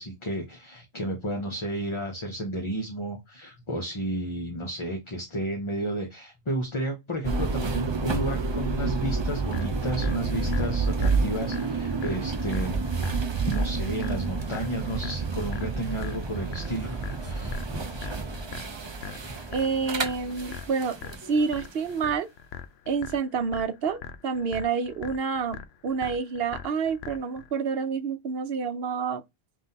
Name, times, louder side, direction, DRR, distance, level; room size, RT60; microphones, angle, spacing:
voice 1, 0.0-12.8 13.4-16.9 17.2-17.6, right 1 dB, 30° left, 0.9 m, -32 dB
sound 1, 7.2-21.2, right 4 dB, 35° right, 0.5 m, -29 dB
sound 2, 9.5-27.5, left 8 dB, 85° left, 0.8 m, -42 dB
sound 3, 16.6-22.1, equal, 15° right, 1.2 m, -43 dB
voice 2, 19.5-21.0 21.3-22.3 22.9-29.2, right 5 dB, 70° right, 0.9 m, -28 dB
5.5 x 2.6 x 2.7 m
omnidirectional pair, 1.1 m